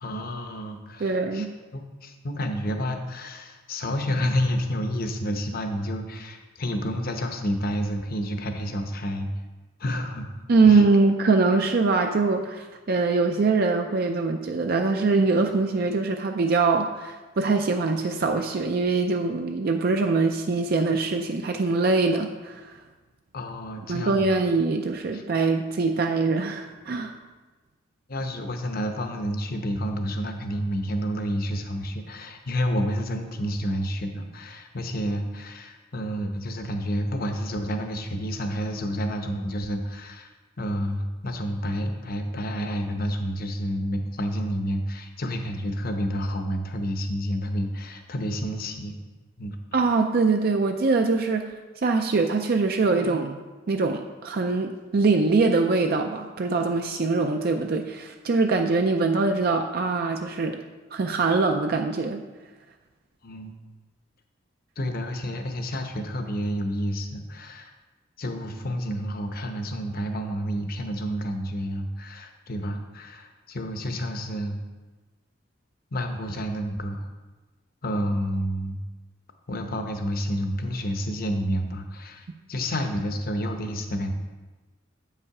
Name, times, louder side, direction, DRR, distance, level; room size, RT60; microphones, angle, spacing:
voice 1, 0.0-1.5 1.7-9.3 9.8-10.3 10.6-10.8 23.3-24.3 25.1-25.2 28.1-40.3 40.6-48.9 49.4-49.6 63.2-63.5 64.8-67.7 68.2-74.6 75.9-77.0 77.8-78.8 79.5-84.1, equal, 50° left, 5 dB, 0.8 m, -29 dB
voice 2, 1.0-1.5 10.5-22.8 23.9-27.1 49.7-51.5 51.8-53.4 53.7-60.6 60.9-62.2, right 3 dB, 50° right, 4 dB, 0.4 m, -23 dB
8.1 x 5.5 x 4.8 m, 1.2 s
head